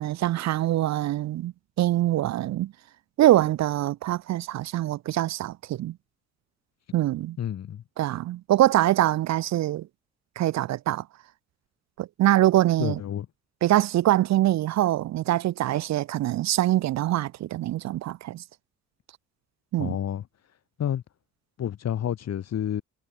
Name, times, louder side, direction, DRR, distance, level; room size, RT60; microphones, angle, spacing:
voice 1, 0.0-1.5 1.8-2.7 3.2-5.9 6.9-7.4 8.0-9.9 10.4-11.0 12.0-13.0 13.6-18.4 19.7-19.9, right 14 dB, 65° right, 0.6 m, -24 dB
voice 2, 7.4-7.8 12.8-13.3 19.8-20.2 20.8-21.0 21.6-22.8, left 10 dB, 60° left, 2.0 m, -29 dB
cardioid pair, 90°, 30 cm